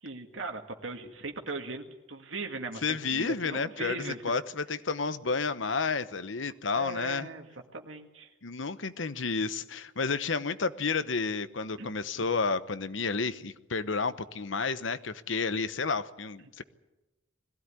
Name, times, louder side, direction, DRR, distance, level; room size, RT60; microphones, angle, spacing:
voice 1, 0.0-4.2 6.7-7.5 7.7-8.3 11.8-11.9 12.2-12.3, right 3 dB, 90° right, 3 dB, 2.0 m, -39 dB
voice 2, 2.8-7.3 8.4-16.6, left 4 dB, 80° left, 13 dB, 1.0 m, -31 dB
21.5 x 16.0 x 9.8 m, 1.0 s
head